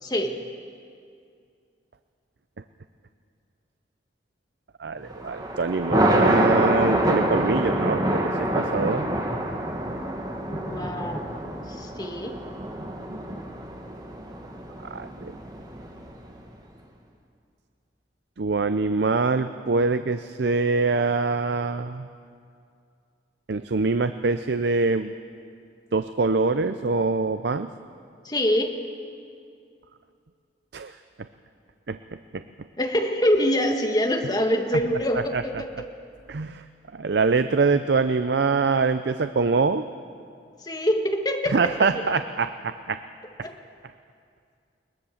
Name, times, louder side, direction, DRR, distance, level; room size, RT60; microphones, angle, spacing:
voice 1, 0.0-0.4 10.3-12.4 28.2-28.8 32.8-35.9 40.6-41.9 43.4-43.5, equal, 25° left, 4 dB, 1.7 m, -25 dB
voice 2, 4.8-9.1 14.9-15.3 18.4-22.0 23.5-25.1 25.9-27.7 30.7-30.9 31.9-32.0 32.3-32.4 35.3-35.4 36.3-36.6 36.9-39.9 41.5-43.0 43.4-43.5, right 4 dB, 75° right, 10 dB, 0.6 m, -24 dB
Thunder, 5.1-16.4, right 1 dB, 20° right, 1.7 m, -26 dB
21.0 x 20.0 x 7.2 m, 2.3 s
head